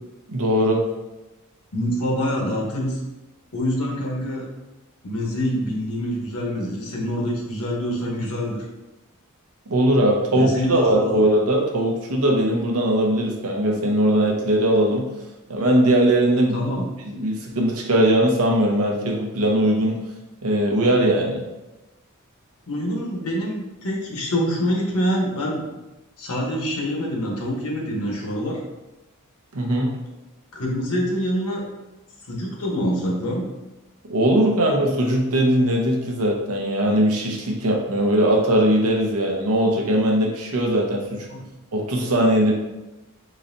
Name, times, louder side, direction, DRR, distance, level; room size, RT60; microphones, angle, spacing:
voice 1, 0.3-0.8 9.7-15.0 15.5-16.7 17.1-20.0 20.4-21.4 29.5-29.9 34.1-41.3 41.7-42.6, right 1 dB, 80° right, 1 dB, 0.7 m, -20 dB
voice 2, 1.7-3.0 3.5-4.4 5.0-8.7 10.3-11.2 16.5-16.9 22.7-25.6 26.2-28.6 30.5-31.6 32.3-33.4 41.3-41.4, equal, 80° left, -1 dB, 1.0 m, -25 dB
3.8 x 3.2 x 2.6 m, 1.0 s
head